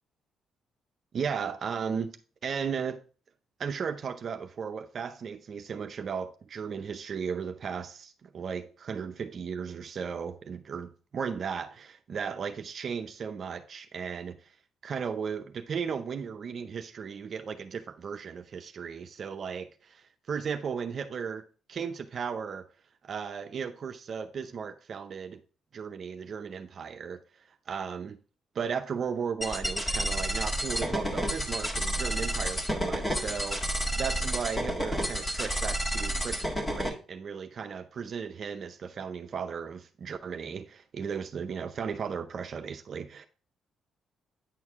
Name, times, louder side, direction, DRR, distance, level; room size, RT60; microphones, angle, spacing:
voice 1, 1.1-3.0 3.6-14.5 14.8-21.4 21.7-22.6 23.0-25.4 25.7-27.2 27.7-28.2 28.5-43.3, right 6 dB, 55° right, 0.6 m, -35 dB
sound 1, 29.4-36.9, equal, 20° left, 1.7 m, -30 dB
9.0 x 4.7 x 3.6 m
cardioid pair, 90°, 0 cm